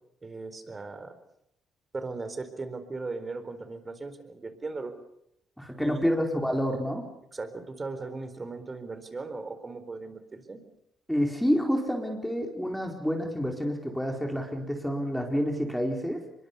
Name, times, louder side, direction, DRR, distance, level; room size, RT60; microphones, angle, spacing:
voice 1, 0.2-1.1 1.9-4.9 5.8-6.1 7.3-10.6, right 3 dB, 30° right, 11 dB, 4.1 m, -38 dB
voice 2, 5.6-7.0 11.1-16.2, equal, ahead, 2 dB, 4.4 m, -28 dB
24.5 x 22.0 x 6.9 m, 0.78 s
supercardioid pair, 65°, 0 cm